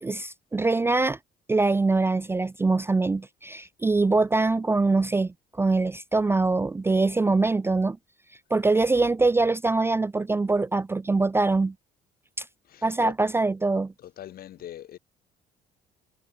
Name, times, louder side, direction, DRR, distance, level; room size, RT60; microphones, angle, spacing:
voice 1, 0.0-1.2 1.5-8.0 8.5-11.7 12.4-12.5 12.8-13.9, right 3 dB, 15° right, 0.4 m, -23 dB
voice 2, 12.7-13.1 14.0-15.0, left 12 dB, 60° left, 3.1 m, -40 dB
cardioid pair, 110°, 17 cm